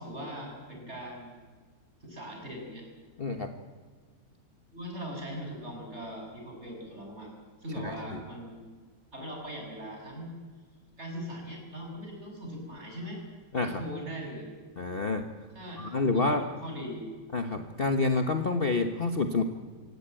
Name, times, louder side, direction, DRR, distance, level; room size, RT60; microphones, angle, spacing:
voice 1, 0.0-1.4 2.0-2.8 4.7-7.3 7.6-8.6 9.1-10.3 11.0-13.2 13.5-14.5 15.5-17.1, equal, 35° right, 1 dB, 6.8 m, -40 dB
voice 2, 3.2-3.5 7.8-8.2 13.5-13.8 14.8-15.3 15.8-16.4 17.3-19.4, left 3 dB, 35° left, 6 dB, 1.3 m, -28 dB
26.0 x 17.0 x 8.9 m, 1.5 s
omnidirectional pair, 1.9 m